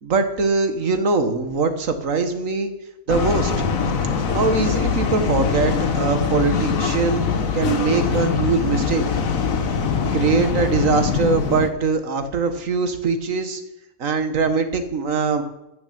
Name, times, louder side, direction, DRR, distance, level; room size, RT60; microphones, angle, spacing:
voice 1, 0.0-2.7 3.1-3.5 4.3-7.2 7.5-9.1 10.1-13.6 14.0-15.4, right 4 dB, 55° right, 8 dB, 1.7 m, -22 dB
sound 1, 3.1-11.7, left 6 dB, 60° left, 1.5 m, -23 dB
13.0 x 7.3 x 8.6 m, 0.91 s
omnidirectional pair, 1.6 m